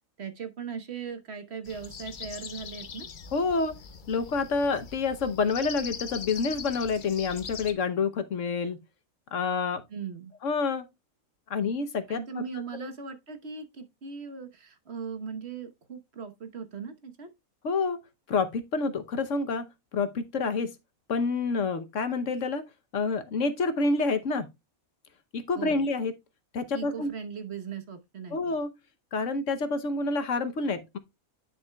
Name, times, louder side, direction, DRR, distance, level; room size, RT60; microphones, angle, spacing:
voice 1, 0.2-3.1 9.9-10.3 12.1-17.3 25.6-25.9 26.7-28.5, right 6 dB, 50° right, 1.3 m, -39 dB
sound 1, 1.7-7.7, left 6 dB, 45° left, 0.8 m, -41 dB
voice 2, 3.3-3.7 4.1-8.8 9.3-9.8 10.4-10.8 11.5-12.4 12.7-12.9 17.6-18.0 18.3-19.6 19.9-20.7 21.1-22.6 22.9-24.5 25.3-26.1 26.5-27.1 28.3-28.7 29.1-31.0, left 4 dB, 65° left, 1.2 m, -28 dB
9.8 x 6.9 x 2.3 m
omnidirectional pair, 1.5 m